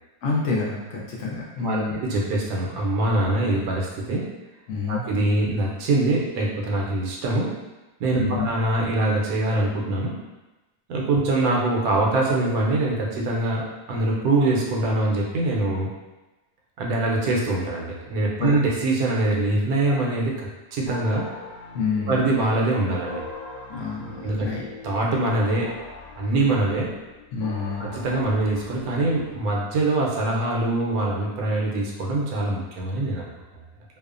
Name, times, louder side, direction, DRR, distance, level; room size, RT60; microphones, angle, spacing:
voice 1, 0.2-2.0 3.2-3.3 4.7-5.0 8.2-8.5 18.4-18.5 21.7-22.3 23.7-24.7 27.3-27.9, left 4 dB, 70° left, -4 dB, 0.8 m, -28 dB
voice 2, 1.6-4.3 4.9-7.5 8.0-10.1 10.9-15.9 16.8-21.2 22.1-23.2 24.2-24.5 24.8-25.7 26.2-26.9 27.8-33.3, right 2 dB, 85° right, -2 dB, 1.1 m, -23 dB
sound 1, 20.9-29.6, left 3 dB, 90° left, 1.1 m, -40 dB
2.7 x 2.0 x 2.4 m, 1.1 s
omnidirectional pair, 1.5 m